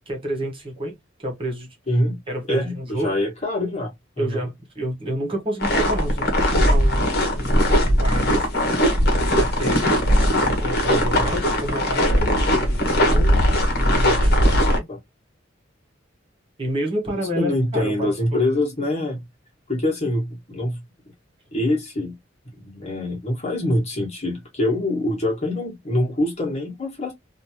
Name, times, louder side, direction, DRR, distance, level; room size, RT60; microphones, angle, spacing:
voice 1, 0.1-1.7 2.3-3.1 4.2-7.1 7.3-8.7 9.3-13.4 13.7-14.9 16.6-18.4, right 1 dB, 30° right, 1.3 m, -30 dB
voice 2, 1.9-2.2 2.5-4.5 14.4-15.0 17.4-19.2 19.7-20.8 21.5-22.1 22.6-27.1, left 1 dB, 35° left, 1.6 m, -25 dB
sound 1, 5.6-14.8, equal, 55° left, 1.3 m, -19 dB
3.2 x 2.7 x 2.8 m
head